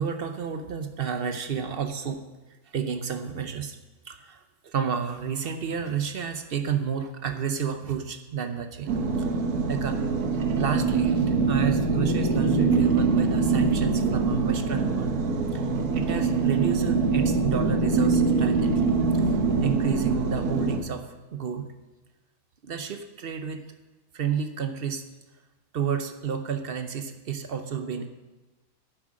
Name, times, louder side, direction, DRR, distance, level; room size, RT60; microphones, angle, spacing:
voice 1, 0.0-2.2 2.7-3.8 4.1-9.3 9.7-10.0 10.3-15.3 15.5-15.7 15.9-18.9 19.1-21.7 22.6-23.6 24.1-25.0 25.7-28.1, right 7 dB, 55° right, 7 dB, 0.7 m, -31 dB
sound 1, 8.9-20.8, right 4 dB, 80° right, 1.5 m, -24 dB
9.7 x 7.4 x 6.2 m, 1.1 s
omnidirectional pair, 1.6 m